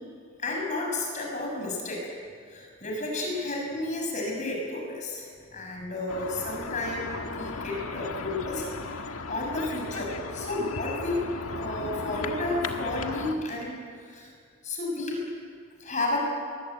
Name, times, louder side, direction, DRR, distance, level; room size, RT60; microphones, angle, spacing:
voice 1, 0.4-2.1 2.5-9.0 9.3-11.2 11.5-14.3 14.6-15.3 15.8-16.2, left 2 dB, 35° left, 0 dB, 6.5 m, -32 dB
sound 1, 6.1-13.3, left 3 dB, 85° left, 1.6 m, -36 dB
23.5 x 21.0 x 9.1 m, 2.1 s
head